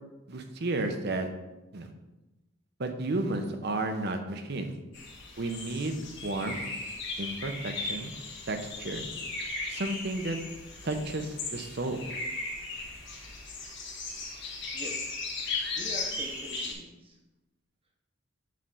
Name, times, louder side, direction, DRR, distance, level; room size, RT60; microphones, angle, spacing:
voice 1, 0.3-1.3 1.7-1.9 2.8-4.7 5.4-6.0 6.2-6.6 7.2-8.1 8.5-9.1 9.7-10.4 10.8-12.0, right 2 dB, 50° right, 6 dB, 0.7 m, -32 dB
sound 1, 4.9-16.7, left 3 dB, 55° left, 1.5 m, -37 dB
voice 2, 14.7-15.2 15.7-17.2, right 1 dB, 25° right, 2 dB, 0.9 m, -44 dB
7.5 x 3.4 x 5.6 m, 1.0 s
head